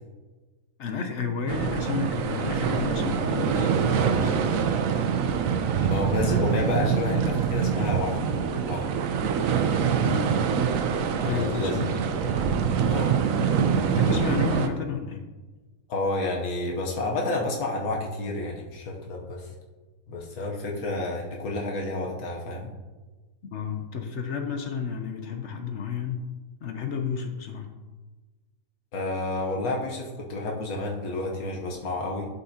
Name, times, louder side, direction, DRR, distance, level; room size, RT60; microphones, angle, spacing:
voice 1, 0.8-4.4 10.0-10.3 11.2-11.9 13.9-15.2 23.5-26.3 26.6-27.7, left 6 dB, 60° left, 5 dB, 1.0 m, -31 dB
sound 1, 1.5-14.7, right 7 dB, 75° right, 1.0 m, -25 dB
voice 2, 5.8-8.2 8.5-8.9 11.2-11.8 12.2-12.4 12.8-13.2 15.9-19.5 20.1-22.7 28.9-32.3, left 2 dB, 85° left, -1 dB, 1.5 m, -30 dB
11.5 x 5.5 x 2.8 m, 1.2 s
omnidirectional pair, 1.5 m